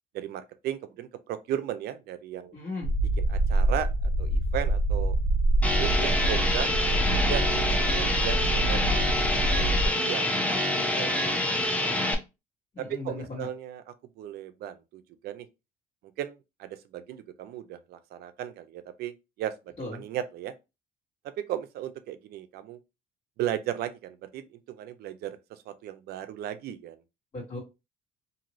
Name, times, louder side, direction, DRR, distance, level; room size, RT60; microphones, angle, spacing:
voice 1, 0.1-2.6 3.3-3.9 4.2-5.2 5.8-9.1 9.5-11.1 11.5-12.0 12.8-13.8 14.2-15.5 16.2-19.5 19.9-20.5 21.4-22.8 23.4-27.0, right 11 dB, 70° right, 0.5 m, -36 dB
voice 2, 2.5-2.9 12.7-13.5 19.8-20.0 27.3-27.6, left 2 dB, 35° left, 1.4 m, -36 dB
sound 1, 2.8-9.9, right 1 dB, 65° left, 0.6 m, -26 dB
sound 2, 5.6-12.1, left 1 dB, 10° left, 0.5 m, -26 dB
2.7 x 2.5 x 3.0 m
cardioid pair, 110°, 17 cm